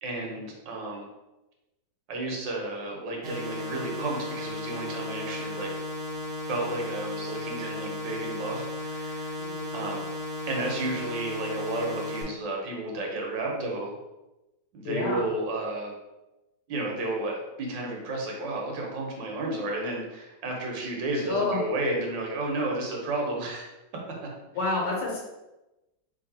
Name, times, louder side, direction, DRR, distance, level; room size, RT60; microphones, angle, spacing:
voice 1, 0.0-1.1 2.1-5.7 6.5-9.3 9.7-10.0 10.5-13.9 14.7-15.9 16.7-23.7 24.1-24.3, right 2 dB, 85° right, 0 dB, 1.6 m, -32 dB
sound 1, 3.2-12.2, left 1 dB, 60° right, 1.6 m, -35 dB
voice 2, 9.4-10.0 14.8-15.3 21.3-21.7 24.5-25.2, left 2 dB, 70° left, -3 dB, 1.5 m, -29 dB
3.4 x 2.6 x 4.1 m, 1.0 s
omnidirectional pair, 2.0 m